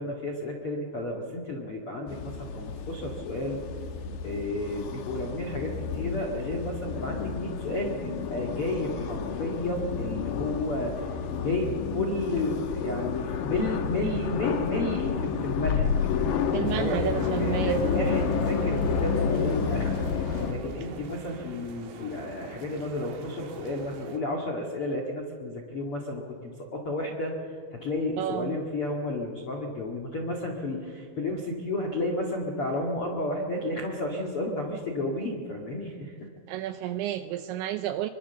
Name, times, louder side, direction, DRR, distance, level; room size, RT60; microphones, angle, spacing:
voice 1, 0.0-3.6 4.2-15.9 16.5-20.0 20.5-36.3, left 1 dB, 60° left, 1 dB, 1.4 m, -32 dB
sound 1, 2.1-20.5, left 6 dB, 85° left, 1.9 m, -30 dB
voice 2, 16.5-17.8 28.2-28.6 36.5-38.1, right 12 dB, 80° right, 9 dB, 2.7 m, -31 dB
sound 2, 16.6-24.2, right 5 dB, 60° right, 3.5 m, -45 dB
25.5 x 24.0 x 7.0 m, 2.3 s
omnidirectional pair, 5.9 m